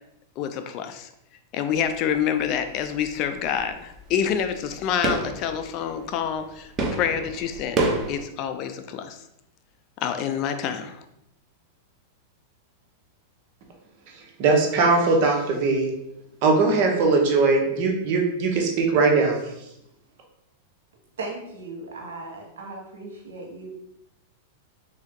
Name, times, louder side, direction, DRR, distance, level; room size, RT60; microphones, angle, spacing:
voice 1, 0.4-1.1 1.5-9.2 10.0-11.0, left 8 dB, 45° left, 8 dB, 0.4 m, -27 dB
sound 1, 1.7-2.1 2.4-8.2, right 2 dB, 25° right, 0.6 m, -30 dB
voice 2, 14.4-15.9 16.4-19.4, right 3 dB, 50° right, 2 dB, 0.9 m, -20 dB
voice 3, 21.2-23.7, right 3 dB, 85° right, 0 dB, 1.2 m, -37 dB
3.5 x 2.7 x 3.6 m, 0.82 s
hypercardioid pair, 130°, 0 cm